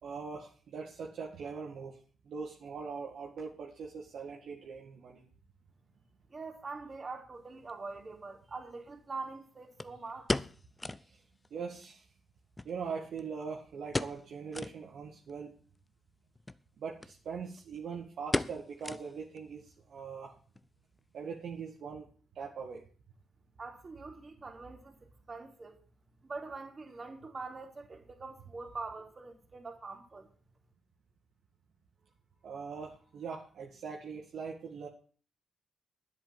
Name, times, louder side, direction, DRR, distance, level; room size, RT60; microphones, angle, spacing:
voice 1, 0.0-2.0 2.2-5.3 11.5-12.0 12.6-15.5 16.8-20.4 21.1-22.1 22.4-22.8 32.4-34.9, right 5 dB, 70° right, 2.0 m, -41 dB
voice 2, 6.3-10.3 23.6-25.8 26.2-30.3, right 3 dB, 45° right, 3.6 m, -44 dB
sound 1, 7.7-7.8 9.8-11.1 11.4-11.5 11.8-11.9 12.6-13.4 13.9-14.3 14.5-14.8 15.3-15.4 16.4-16.6 17.0-17.1 17.4-17.8 18.3-19.4 19.7-19.8 20.4-20.7 21.0-21.1, left 2 dB, 25° left, 0.8 m, -36 dB
10.5 x 8.3 x 7.7 m
hypercardioid pair, 40°, 0 cm